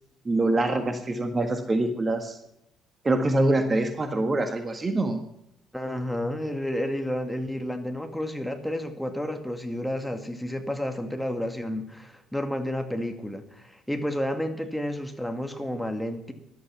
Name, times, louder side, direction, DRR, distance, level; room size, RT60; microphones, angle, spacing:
voice 1, 0.2-2.4 3.0-5.2, right 2 dB, 25° right, 7 dB, 1.6 m, -25 dB
voice 2, 5.7-16.3, left 1 dB, 5° left, 5 dB, 2.2 m, -31 dB
14.5 x 12.0 x 5.9 m, 0.82 s
figure-of-eight pair, 50°, 0 cm